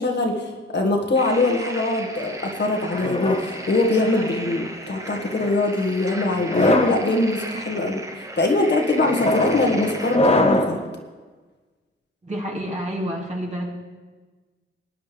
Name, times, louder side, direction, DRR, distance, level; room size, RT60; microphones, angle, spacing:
voice 1, 0.0-8.0 8.4-10.8, left 2 dB, 55° left, 1 dB, 1.7 m, -22 dB
sound 1, 1.1-10.2, right 1 dB, 15° right, 1.2 m, -36 dB
sound 2, 2.9-4.4 5.1-5.5 6.3-7.0 7.7-8.0 9.0-10.8, left 1 dB, 30° left, 1.0 m, -23 dB
voice 2, 12.2-13.7, equal, 35° right, -1 dB, 2.5 m, -28 dB
18.5 x 10.0 x 3.4 m, 1.3 s
wide cardioid pair, 85°, 21 cm